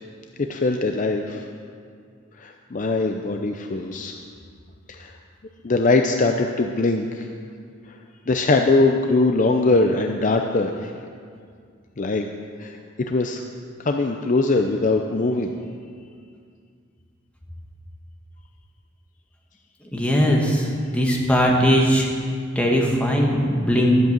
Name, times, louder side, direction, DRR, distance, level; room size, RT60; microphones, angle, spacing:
voice 1, 0.4-1.4 2.4-4.1 4.9-5.1 5.6-7.3 8.3-10.9 12.0-12.3 12.6-13.4 13.8-15.6, left 3 dB, 40° left, 4 dB, 0.5 m, -21 dB
voice 2, 19.9-20.7 20.9-22.1 22.5-24.0, equal, 5° left, -1 dB, 1.7 m, -19 dB
11.5 x 8.2 x 7.5 m, 2.2 s
head